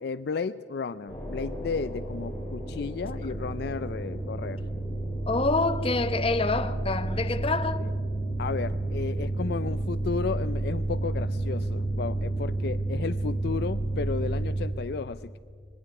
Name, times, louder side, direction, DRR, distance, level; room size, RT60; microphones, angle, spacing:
voice 1, 0.0-4.6 7.8-7.9 8.4-15.4, left 5 dB, 60° left, 0.4 m, -33 dB
sound 1, 1.1-14.6, right 2 dB, 5° left, 5.5 m, -31 dB
voice 2, 5.3-7.8, left 3 dB, 30° left, 0.8 m, -27 dB
25.5 x 21.0 x 4.8 m
head